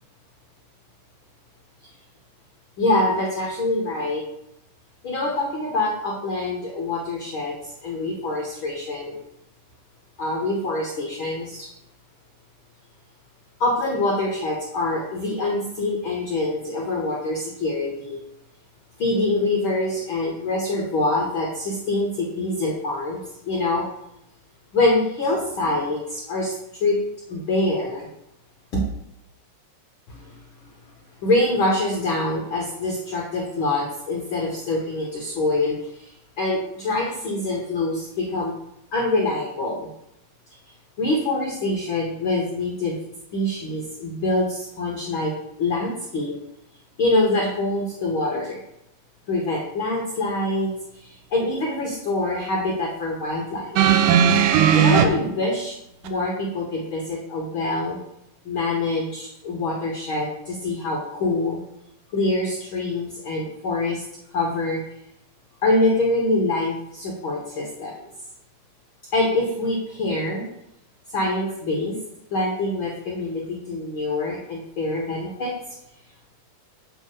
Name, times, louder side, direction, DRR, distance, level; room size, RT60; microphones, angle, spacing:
voice 1, 2.8-4.2 5.0-7.6 7.8-9.2 10.2-11.7 13.6-18.2 19.0-23.8 24.7-26.5 26.8-27.0 27.3-28.1 28.7-28.8 30.1-30.4 31.2-36.1 36.4-38.5 38.9-39.9 41.0-43.0 43.3-45.3 45.6-46.3 47.0-48.6 49.3-50.7 51.0-53.8 54.4-55.7 56.0-58.0 58.4-61.6 62.1-64.0 64.3-64.8 65.6-68.1 69.1-70.4 71.1-71.9 72.3-75.5, left 2 dB, 80° left, -2 dB, 1.1 m, -25 dB
sound 1, 53.8-55.1 56.1-56.2, right 9 dB, 80° right, 2.3 m, -16 dB
7.4 x 3.7 x 6.6 m, 0.81 s
omnidirectional pair, 4.1 m